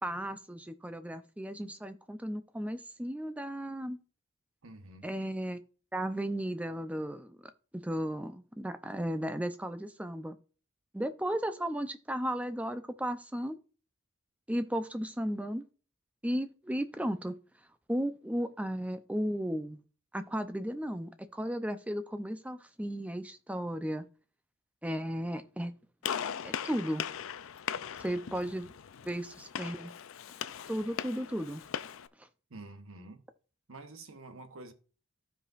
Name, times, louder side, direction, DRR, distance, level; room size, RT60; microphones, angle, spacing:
voice 1, 0.0-4.0 5.0-5.6 5.9-7.4 7.7-10.4 10.9-13.6 14.5-15.6 16.2-17.3 17.9-19.8 20.1-24.0 24.8-25.7 26.4-27.1 28.0-28.7 29.0-29.9 30.7-31.6 32.2-32.3, equal, 5° right, 0.5 m, -35 dB
voice 2, 4.6-5.1 32.5-33.2 33.7-34.7, right 2 dB, 70° right, 1.0 m, -48 dB
Gunshot gunfire, 26.0-32.1, left 8 dB, 70° left, 0.4 m, -39 dB
14.5 x 5.0 x 2.5 m
head